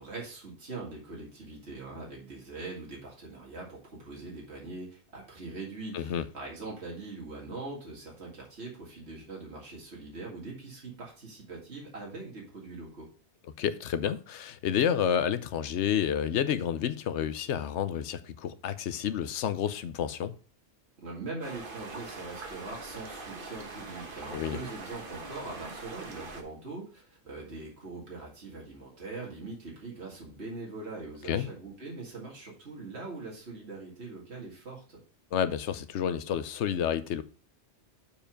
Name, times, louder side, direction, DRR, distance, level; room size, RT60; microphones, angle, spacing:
voice 1, 0.0-13.1 21.0-35.0, right 3 dB, 70° right, 2.4 m, -42 dB
voice 2, 5.9-6.3 13.6-20.3 24.3-24.6 31.2-31.5 35.3-37.2, left 9 dB, 80° left, 1.0 m, -30 dB
sound 1, 21.4-26.4, right 3 dB, 50° right, 1.4 m, -43 dB
7.0 x 4.9 x 5.0 m
omnidirectional pair, 1.2 m